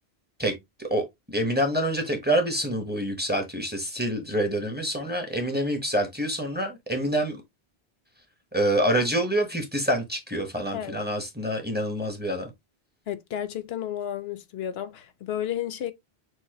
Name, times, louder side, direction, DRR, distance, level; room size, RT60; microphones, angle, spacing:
voice 1, 0.8-7.4 8.5-12.5, right 1 dB, 10° right, 1.1 m, -26 dB
voice 2, 13.1-15.9, left 10 dB, 75° left, 0.8 m, -32 dB
6.4 x 2.9 x 2.9 m
omnidirectional pair, 1.1 m